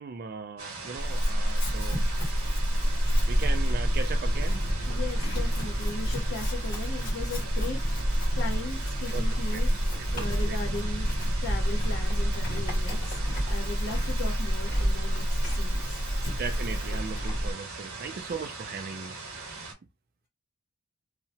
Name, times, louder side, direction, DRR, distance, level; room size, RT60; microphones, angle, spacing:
voice 1, 0.0-2.1 3.3-4.6 9.1-9.2 9.5-9.6 10.1-10.6 16.4-19.2, right 5 dB, 45° right, 0.3 m, -38 dB
sound 1, 0.6-19.7, right 3 dB, 75° right, 0.8 m, -39 dB
Chewing mastication / Livestock farm animals working animals, 1.0-17.5, equal, 45° left, 1.4 m, -28 dB
voice 2, 4.9-11.1 11.4-13.2 13.5-16.4, left 3 dB, 65° left, 0.7 m, -38 dB
2.7 x 2.1 x 2.7 m
head